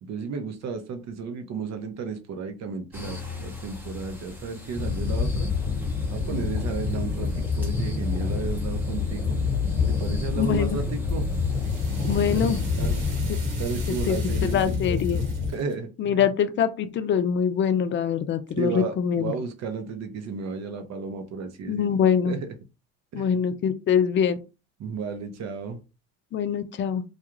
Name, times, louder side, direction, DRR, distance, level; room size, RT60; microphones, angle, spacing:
voice 1, 0.0-5.5 6.1-9.4 9.8-11.2 12.3-12.4 12.8-13.0 13.6-15.2 15.5-16.3 18.6-22.0 22.2-22.5 23.1-23.4 24.8-25.8, right 5 dB, 45° right, 7 dB, 0.8 m, -33 dB
sound 1, 2.9-13.1, left 2 dB, 5° right, 0.8 m, -42 dB
sound 2, 4.7-15.5, left 4 dB, 15° left, 1.2 m, -27 dB
voice 2, 10.4-10.8 12.1-12.6 14.1-15.2 16.0-19.3 21.7-22.4 23.1-24.4 26.3-27.0, left 8 dB, 35° left, 10 dB, 0.4 m, -24 dB
sound 3, 10.6-15.7, right 4 dB, 80° right, 1.1 m, -45 dB
2.4 x 2.3 x 3.0 m, 0.30 s
hypercardioid pair, 75°, 36 cm